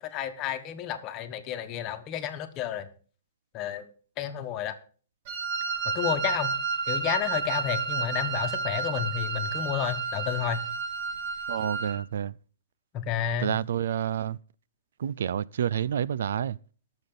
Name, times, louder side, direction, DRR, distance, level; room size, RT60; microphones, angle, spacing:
voice 1, 0.0-2.9 3.5-3.9 4.2-4.7 5.9-6.5 6.9-10.6 12.9-13.5, left 10 dB, 25° left, 1.3 m, -31 dB
Wind instrument woodwind instrument, 5.3-12.0, right 5 dB, 40° right, 1.9 m, -31 dB
voice 2, 11.5-12.3 13.4-14.4 15.0-16.6, right 9 dB, 70° right, 0.4 m, -29 dB
19.0 x 7.1 x 3.9 m
hypercardioid pair, 160°, 0 cm